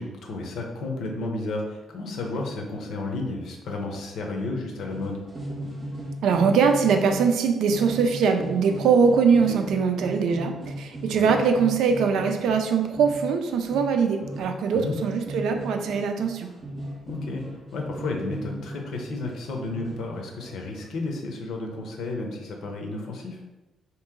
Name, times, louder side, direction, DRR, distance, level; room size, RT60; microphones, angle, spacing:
voice 1, 0.0-5.2 9.5-9.6 11.1-11.3 14.7-14.9 17.1-17.4 17.7-23.4, left 2 dB, 60° left, 2 dB, 0.8 m, -32 dB
sound 1, 4.9-7.4 7.7-20.8, equal, 20° right, 0.7 m, -37 dB
voice 2, 6.2-16.5, right 5 dB, 75° right, 5 dB, 0.5 m, -22 dB
4.0 x 3.0 x 3.7 m, 1.1 s
cardioid pair, 170°, 0 cm